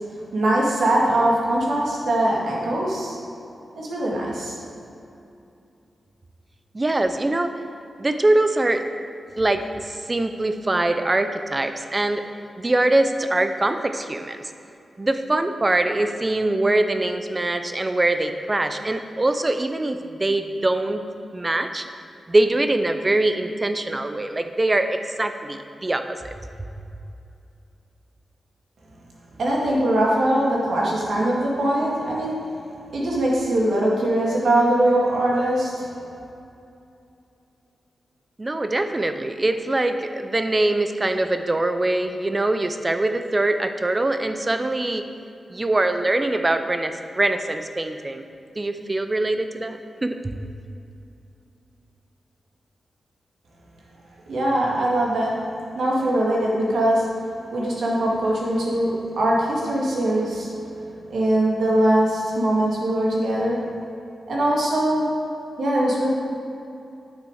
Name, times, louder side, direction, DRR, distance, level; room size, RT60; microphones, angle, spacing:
voice 1, 0.3-3.2 3.8-4.5 29.4-32.3 32.9-35.9 54.3-55.3 55.7-57.0 57.5-60.5 61.1-63.6 64.3-65.1 65.6-66.1, right 1 dB, 75° right, -4 dB, 2.2 m, -21 dB
voice 2, 6.7-7.5 8.0-8.9 9.4-12.2 12.6-14.4 15.0-21.0 21.3-21.9 22.3-26.3 38.4-45.1 45.5-48.2 48.6-50.2, right 2 dB, 25° right, 8 dB, 0.6 m, -23 dB
9.4 x 7.1 x 4.8 m, 2.7 s
wide cardioid pair, 90°, 0 cm